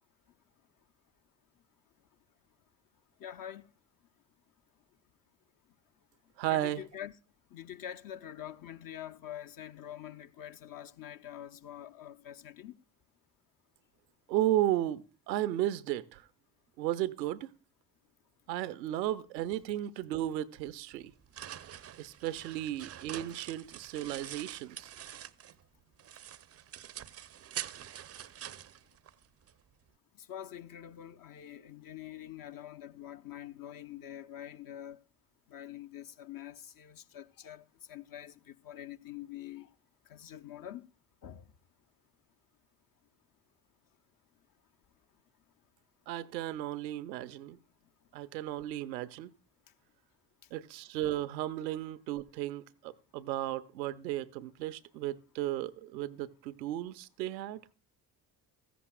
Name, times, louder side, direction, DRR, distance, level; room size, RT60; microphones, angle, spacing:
voice 1, 3.2-3.6 6.5-7.1 7.5-12.7 30.3-35.0 35.5-38.3 38.6-39.7 40.1-40.9 41.2-41.4, left 11 dB, 45° left, 0.7 m, -45 dB
voice 2, 6.4-6.8 14.3-16.2 16.8-17.5 18.5-21.1 22.0-24.9 46.1-47.6 48.1-49.3 50.5-57.6, right 13 dB, 80° right, 0.6 m, -34 dB
sound 1, 20.9-25.7 26.0-29.5, right 10 dB, 30° right, 0.5 m, -45 dB
16.0 x 14.0 x 2.3 m
figure-of-eight pair, 50°, 50 cm